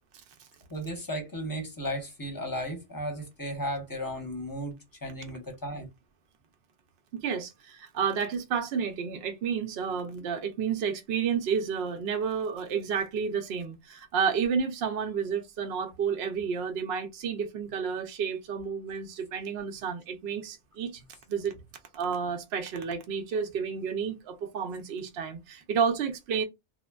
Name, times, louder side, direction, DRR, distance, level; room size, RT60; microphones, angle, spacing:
voice 1, 0.7-4.8 5.0-5.9, equal, 20° left, 0.7 m, -35 dB
voice 2, 7.1-21.0 21.3-21.5 21.9-26.4, right 6 dB, 65° right, 0.7 m, -31 dB
3.2 x 2.1 x 2.2 m
omnidirectional pair, 1.2 m